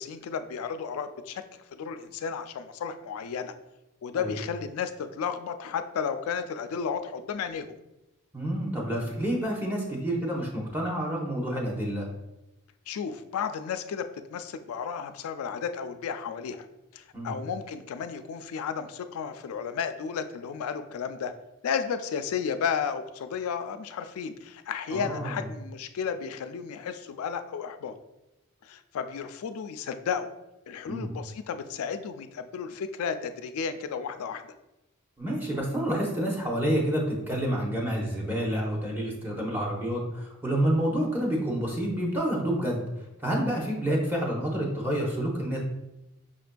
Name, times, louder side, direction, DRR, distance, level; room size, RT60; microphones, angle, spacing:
voice 1, 0.0-1.4 1.7-3.5 4.0-7.7 12.9-16.7 16.9-21.3 21.6-27.9 28.6-30.3 30.7-34.4, left 6 dB, 80° left, 10 dB, 0.3 m, -33 dB
voice 2, 8.3-12.1 17.1-17.3 24.9-25.3 30.9-31.1 35.2-42.8 43.2-45.6, right 1 dB, 10° right, -2 dB, 0.7 m, -28 dB
5.8 x 2.5 x 2.2 m, 0.95 s
head